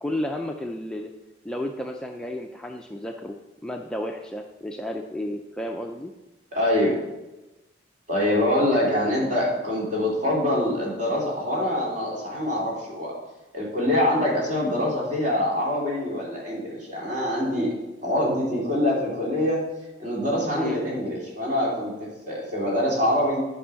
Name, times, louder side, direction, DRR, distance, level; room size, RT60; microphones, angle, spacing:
voice 1, 0.0-1.1 1.4-3.4 3.6-6.1 20.5-20.8, left 1 dB, 5° left, 2 dB, 0.4 m, -32 dB
voice 2, 6.5-6.9 8.1-13.2 13.5-19.6 20.0-23.5, left 1 dB, 40° right, -4 dB, 3.3 m, -24 dB
11.0 x 5.5 x 5.7 m, 1.0 s
head